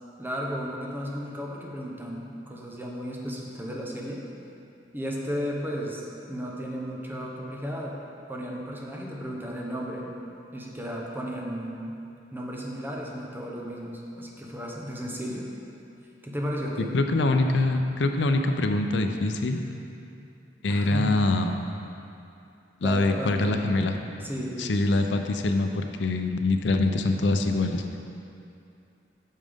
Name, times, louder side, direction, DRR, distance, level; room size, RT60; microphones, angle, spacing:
voice 1, 0.2-4.2 4.9-8.0 8.3-10.1 10.5-11.9 12.3-15.5 16.2-16.9 20.2-20.3 20.7-21.2 22.8-23.6 24.2-24.7, equal, 10° right, -2 dB, 0.9 m, -34 dB
voice 2, 16.8-19.6 20.6-21.5 22.8-24.0 24.6-27.8, left 2 dB, 75° left, 5 dB, 0.5 m, -24 dB
8.8 x 6.5 x 3.6 m, 2.7 s
head